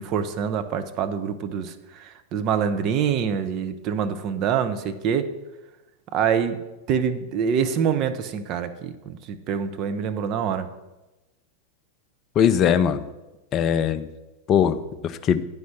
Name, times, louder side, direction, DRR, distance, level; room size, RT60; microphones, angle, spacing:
voice 1, 0.0-5.3 6.1-6.6 6.9-10.7, right 7 dB, 40° right, 8 dB, 0.7 m, -25 dB
voice 2, 12.4-13.1 13.5-14.1 14.5-15.4, left 8 dB, 30° left, 12 dB, 0.5 m, -20 dB
9.5 x 5.2 x 5.9 m, 1.1 s
figure-of-eight pair, 90°, 0 cm